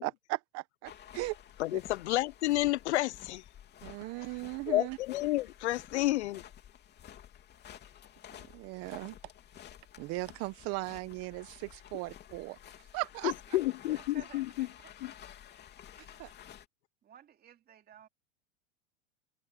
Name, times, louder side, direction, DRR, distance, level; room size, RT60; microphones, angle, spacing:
voice 1, 0.0-1.4 1.7-1.8 3.8-5.0 8.4-9.2 10.0-13.3 16.0-16.3, right 23 dB, 45° right, 1.2 m, -38 dB
sound 1, 0.8-16.7, left 10 dB, 30° left, 3.2 m, -52 dB
voice 2, 1.6-3.4 4.7-6.4 13.2-14.7 15.0-15.1, left 16 dB, 80° left, 0.9 m, -30 dB
voice 3, 3.9-4.3 13.9-14.9 17.0-18.1, right 9 dB, 30° right, 2.9 m, -55 dB
supercardioid pair, 125°, 33 cm